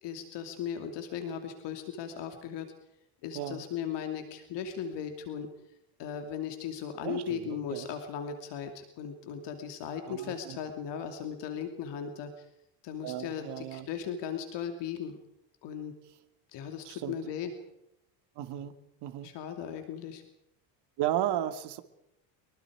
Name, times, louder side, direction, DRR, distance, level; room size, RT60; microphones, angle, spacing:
voice 1, 0.0-2.7 3.2-5.5 6.0-12.4 12.8-15.2 15.6-15.9 16.5-17.5 19.2-20.2, left 7 dB, 65° left, 6 dB, 2.8 m, -37 dB
voice 2, 7.0-7.9 10.1-10.6 13.0-13.9 16.8-17.1 18.4-19.3 21.0-21.8, right 12 dB, 60° right, 8 dB, 2.4 m, -34 dB
24.0 x 23.0 x 4.9 m, 0.82 s
cardioid pair, 120°, 45 cm